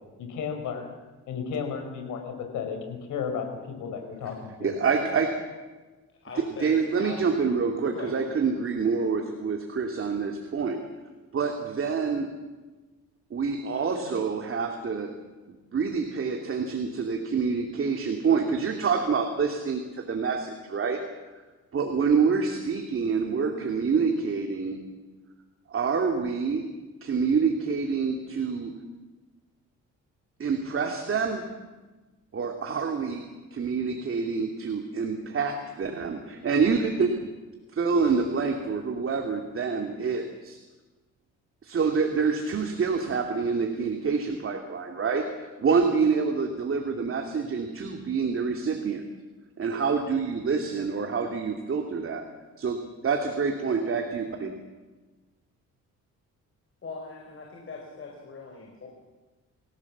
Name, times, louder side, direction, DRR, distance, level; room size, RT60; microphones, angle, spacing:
voice 1, 0.2-0.9 1.3-4.7, left 6 dB, 80° left, 5 dB, 4.9 m, -33 dB
voice 2, 4.6-5.4 6.4-10.8 11.3-12.3 13.3-15.1 15.5-21.0 21.7-24.8 25.7-26.7 27.0-28.8 30.4-31.5 32.3-37.3 37.7-40.6 41.6-49.0 49.6-52.3 52.6-54.5, right 5 dB, 45° right, 4 dB, 2.6 m, -27 dB
voice 3, 6.2-7.2 7.9-8.2 56.8-58.9, left 4 dB, 45° left, 0 dB, 5.1 m, -41 dB
26.5 x 16.5 x 7.3 m, 1.2 s
cardioid pair, 90°, 30 cm